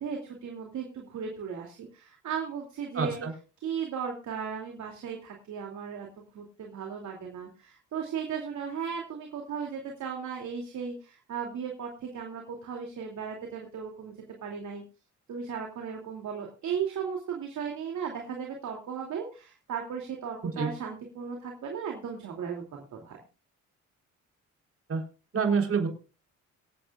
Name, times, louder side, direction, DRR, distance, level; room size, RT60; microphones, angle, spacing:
voice 1, 0.0-3.2 3.6-6.1 6.3-14.1 14.4-14.8 15.3-23.2, right 7 dB, 70° right, 1 dB, 2.8 m, -36 dB
voice 2, 2.9-3.3 20.6-20.7 24.9-25.0 25.3-25.9, right 5 dB, 50° right, 3 dB, 3.9 m, -26 dB
25.5 x 8.6 x 2.4 m, 0.34 s
cardioid pair, 90°, 30 cm